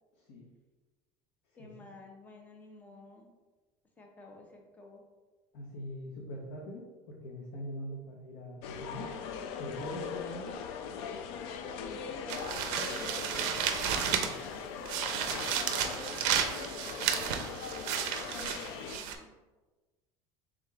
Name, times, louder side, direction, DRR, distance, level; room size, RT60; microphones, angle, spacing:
voice 1, 1.6-3.3 4.0-5.0 11.9-13.6 14.1-17.1 18.3-19.3, left 2 dB, 15° left, 2 dB, 0.6 m, -52 dB
voice 2, 5.5-9.1 9.6-10.6, equal, 85° left, -1 dB, 0.7 m, -42 dB
sound 1, 8.6-19.0, left 6 dB, 65° left, 0.4 m, -40 dB
sound 2, 12.3-14.5 14.9-19.2, right 8 dB, 70° right, 0.4 m, -32 dB
4.8 x 3.6 x 2.3 m, 1.2 s
cardioid pair, 165°, 10 cm